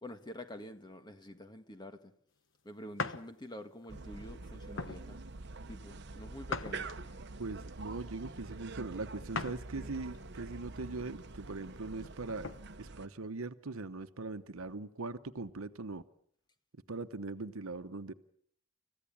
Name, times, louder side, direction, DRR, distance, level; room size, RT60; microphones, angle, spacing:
voice 1, 0.0-2.1 2.6-5.2 5.7-6.9, left 1 dB, 20° left, 1.7 m, -47 dB
sound 1, 3.0-3.3 3.8-4.0 4.8-5.0 6.5-7.2 9.3-9.7 10.1-10.2 11.9-12.6, left 4 dB, 65° left, 1.2 m, -39 dB
sound 2, 3.9-13.1, right 3 dB, 55° right, 1.0 m, -46 dB
voice 2, 7.4-12.5 12.8-16.0 16.9-18.1, right 3 dB, 90° right, 1.0 m, -41 dB
30.0 x 15.0 x 8.6 m
head